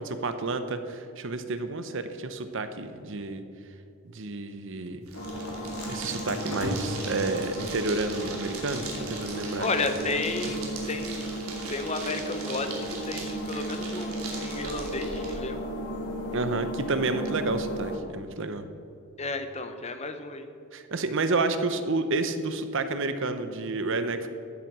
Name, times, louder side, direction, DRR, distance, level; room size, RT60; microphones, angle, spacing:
voice 1, 0.0-3.4 4.0-5.0 5.9-9.7 16.3-18.6 20.7-24.3, right 3 dB, 60° right, 9 dB, 0.8 m, -30 dB
sound 1, 5.0-15.3, right 4 dB, 90° right, 2.6 m, -41 dB
sound 2, 5.1-18.0, right 1 dB, 90° left, 2.4 m, -35 dB
voice 2, 9.6-10.6 10.9-11.3 11.7-15.6 19.2-20.4, left 3 dB, 30° left, 8 dB, 0.8 m, -32 dB
13.5 x 7.5 x 6.2 m, 2.6 s
head